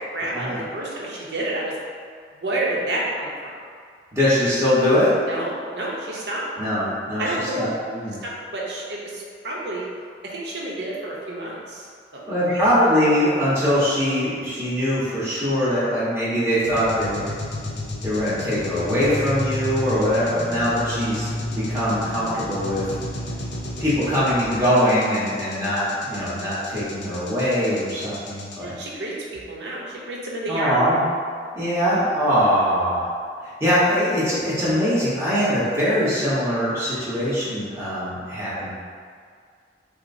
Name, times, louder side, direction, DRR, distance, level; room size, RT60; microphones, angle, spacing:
voice 1, 0.1-1.7 2.4-3.6 5.3-6.5 7.2-7.7 8.2-9.8 10.2-12.7 28.6-30.8 32.3-32.4, right 1 dB, 75° right, -4 dB, 0.8 m, -29 dB
voice 2, 4.1-5.1 6.6-8.2 12.3-17.3 18.0-21.3 21.5-22.8 23.8-28.7 30.4-31.1 31.5-33.1 33.6-38.7, equal, 15° right, -11 dB, 1.1 m, -22 dB
sound 1, 16.6-28.5, left 1 dB, 70° left, 0.6 m, -31 dB
5.9 x 2.1 x 2.6 m, 2.1 s
head